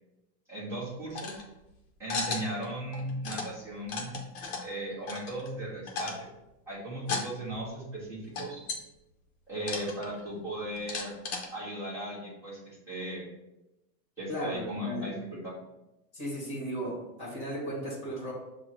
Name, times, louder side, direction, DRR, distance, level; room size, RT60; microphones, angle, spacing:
voice 1, 0.5-1.4 2.0-4.2 4.6-6.1 6.7-8.6 9.5-11.1 11.5-13.3 14.2-15.5, right 1 dB, 5° right, -12 dB, 1.5 m, -37 dB
sound 1, 1.1-1.4 2.1-2.7 2.9-3.5 3.8-4.7 5.1-5.6 5.9-6.3 7.0-7.3 7.6-7.7 8.4-8.8 9.6-10.3 10.7-11.5, left 4 dB, 40° left, 0.8 m, -35 dB
voice 2, 14.3-15.1 16.1-18.3, equal, 15° left, -5 dB, 1.3 m, -35 dB
6.9 x 2.4 x 3.1 m, 0.94 s
supercardioid pair, 175°, 47 cm